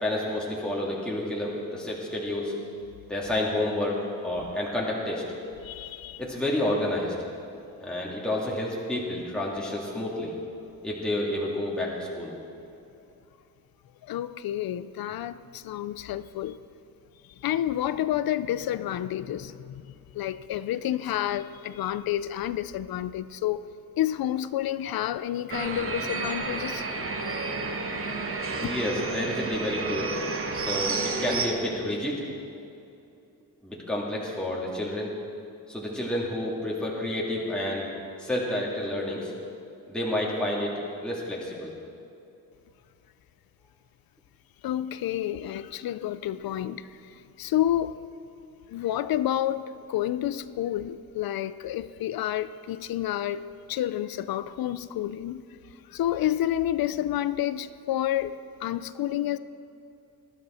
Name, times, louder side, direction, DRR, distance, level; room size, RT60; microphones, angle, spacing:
voice 1, 0.0-2.5 3.1-5.2 6.2-7.1 7.8-10.3 10.8-12.3 28.6-30.2 30.5-32.2 33.6-35.1 35.7-37.9 38.2-39.3 39.9-40.7 41.0-41.7, left 1 dB, 5° left, 2.0 m, -29 dB
voice 2, 5.6-6.2 14.0-16.6 17.4-19.8 20.1-23.6 24.0-26.8 30.5-30.9 44.6-48.0 48.7-55.4 55.9-59.4, left 12 dB, 80° left, 0.5 m, -29 dB
sound 1, 25.5-31.5, right 3 dB, 40° right, 1.2 m, -31 dB
19.5 x 12.5 x 4.3 m
wide cardioid pair, 155°, 35 cm